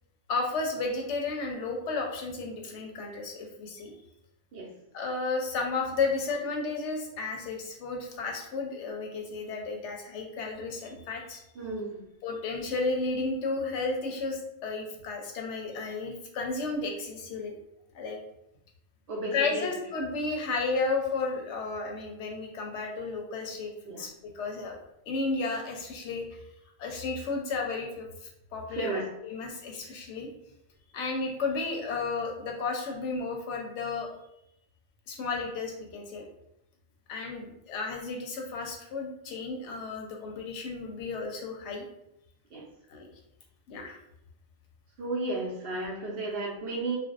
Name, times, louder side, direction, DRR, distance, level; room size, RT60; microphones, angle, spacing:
voice 1, 0.3-3.9 4.9-11.4 12.2-17.5 17.9-18.2 19.3-23.7 24.0-24.7 25.1-26.2 26.8-28.1 28.5-30.3 30.9-34.1 35.1-36.2 37.1-41.8 42.9-43.1 43.7-44.0, left 3 dB, 90° left, 1 dB, 0.9 m, -33 dB
voice 2, 11.6-12.0 19.1-19.6 23.9-24.0 28.7-29.0 42.5-42.6 45.0-47.0, right 2 dB, 65° right, -1 dB, 0.7 m, -33 dB
2.5 x 2.0 x 2.4 m, 0.80 s
omnidirectional pair, 1.2 m